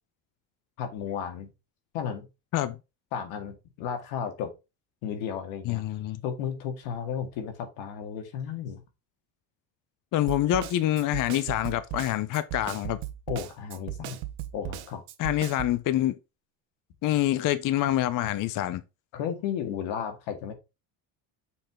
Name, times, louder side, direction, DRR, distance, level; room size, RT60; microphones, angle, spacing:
voice 1, 0.8-1.5 1.9-2.3 3.1-4.5 5.0-5.8 6.2-8.8 13.3-14.2 14.5-15.0 19.1-20.5, left 8 dB, 90° left, 2.1 m, -33 dB
voice 2, 5.7-6.2 10.1-13.0 15.2-16.1 17.0-18.8, left 13 dB, 45° left, 0.6 m, -26 dB
Snare drum, 10.3-15.8, right 14 dB, 80° right, 1.1 m, -37 dB
6.9 x 4.8 x 3.7 m
cardioid pair, 130°, 46 cm